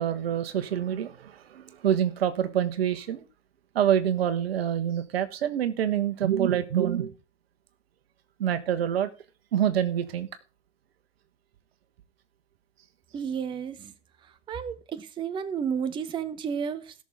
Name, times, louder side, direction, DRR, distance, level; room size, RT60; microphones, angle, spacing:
voice 1, 0.0-3.2 3.7-7.1 8.4-9.1 9.5-10.3, right 10 dB, 55° right, 1.3 m, -26 dB
voice 2, 13.1-13.9 14.2-16.9, right 7 dB, 15° right, 0.8 m, -32 dB
17.5 x 6.5 x 3.6 m
figure-of-eight pair, 105°, 36 cm